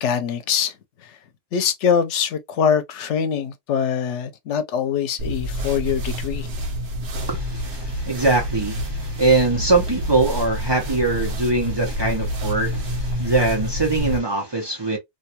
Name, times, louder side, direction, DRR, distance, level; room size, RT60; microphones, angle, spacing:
voice 1, 0.0-0.7 1.1-1.2 1.5-6.5, left 7 dB, 85° left, 0.9 m, -23 dB
sound 1, 5.2-14.2, equal, 65° right, 0.9 m, -28 dB
voice 2, 7.2-15.0, right 3 dB, 25° right, 0.7 m, -22 dB
2.6 x 2.3 x 2.7 m
omnidirectional pair, 1.2 m